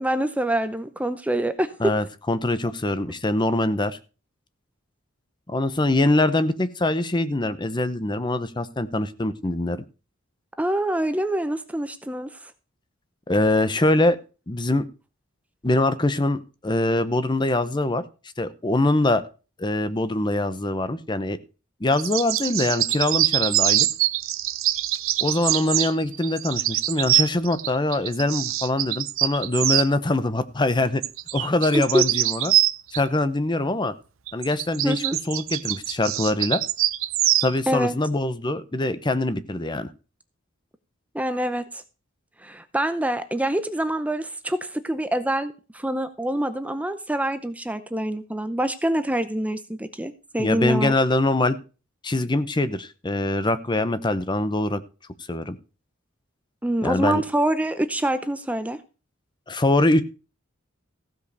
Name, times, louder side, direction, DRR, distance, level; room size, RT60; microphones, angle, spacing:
voice 1, 0.0-1.7 10.6-12.4 31.7-32.0 34.8-35.2 37.7-37.9 41.1-41.8 42.4-51.0 56.6-58.8, right 1 dB, 5° right, 11 dB, 0.6 m, -25 dB
voice 2, 1.8-4.0 5.5-9.8 13.3-14.2 14.5-14.8 15.6-18.0 18.4-19.2 19.6-21.4 21.8-23.9 25.2-31.0 31.3-32.5 32.9-33.9 34.3-36.6 37.4-39.9 50.4-51.6 52.0-54.8 55.3-55.6 56.8-57.2 59.5-60.0, left 2 dB, 20° left, 13 dB, 0.8 m, -23 dB
sound 1, 21.9-29.9 31.0-33.0 34.3-37.5, right 14 dB, 75° right, 0.7 m, -24 dB
15.5 x 5.2 x 6.7 m, 0.34 s
head